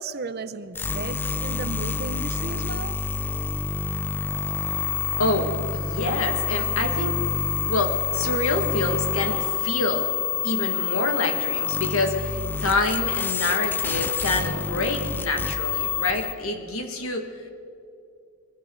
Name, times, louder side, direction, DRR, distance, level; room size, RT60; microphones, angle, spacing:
voice 1, 0.0-2.9, right 3 dB, 50° right, 12 dB, 0.7 m, -35 dB
sound 1, 0.7-16.3, left 5 dB, 10° left, 0.6 m, -27 dB
voice 2, 5.2-7.4 7.7-10.1 10.4-17.3, left 2 dB, 85° left, 5 dB, 2.0 m, -27 dB
23.0 x 15.5 x 4.0 m, 2.6 s
head